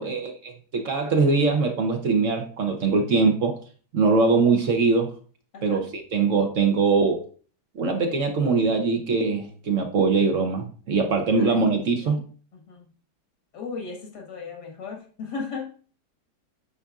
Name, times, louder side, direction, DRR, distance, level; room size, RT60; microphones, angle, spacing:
voice 1, 0.0-3.5 3.9-5.1 5.6-7.2 7.7-12.2, right 4 dB, 55° right, 1.1 m, -22 dB
voice 2, 5.5-5.8 11.4-12.1 12.5-12.9 13.5-15.7, left 4 dB, 85° left, 2.2 m, -37 dB
9.7 x 4.2 x 2.4 m
omnidirectional pair, 1.8 m